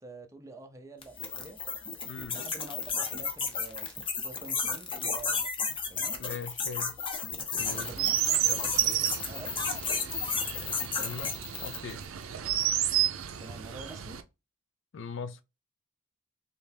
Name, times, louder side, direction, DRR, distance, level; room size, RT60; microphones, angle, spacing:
voice 1, 0.0-1.6 2.3-5.5 5.9-6.2 7.7-8.2 8.6-9.5 13.4-14.2, right 2 dB, 15° right, 0.5 m, -47 dB
sound 1, 1.0-12.0, left 5 dB, 25° left, 0.7 m, -33 dB
voice 2, 2.1-2.4 6.2-6.9 7.5-7.9 8.4-8.7 10.5-11.3 11.6-12.0 14.9-15.4, left 5 dB, 65° left, 0.4 m, -41 dB
Chirp tweet, 7.6-14.2, right 11 dB, 90° right, 0.5 m, -31 dB
3.3 x 2.8 x 3.3 m
head